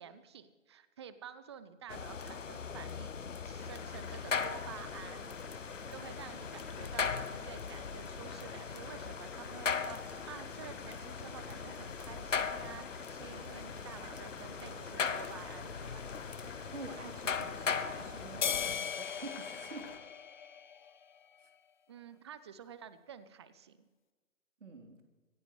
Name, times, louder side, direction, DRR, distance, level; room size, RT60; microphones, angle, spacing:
voice 1, 0.0-3.2 3.4-5.3 5.9-16.0 21.9-23.8, right 8 dB, 20° right, 14 dB, 0.6 m, -50 dB
sound 1, 1.9-18.8, left 6 dB, 70° left, 1.1 m, -39 dB
Boiling, 3.6-20.0, left 4 dB, 55° left, 3.8 m, -51 dB
voice 2, 16.7-19.9 21.4-21.5 24.6-25.0, right 3 dB, 65° right, 2 dB, 3.5 m, -47 dB
sound 2, 18.4-21.0, left 8 dB, 40° left, 0.6 m, -37 dB
25.0 x 15.0 x 3.2 m, 1.3 s
figure-of-eight pair, 135°, 39 cm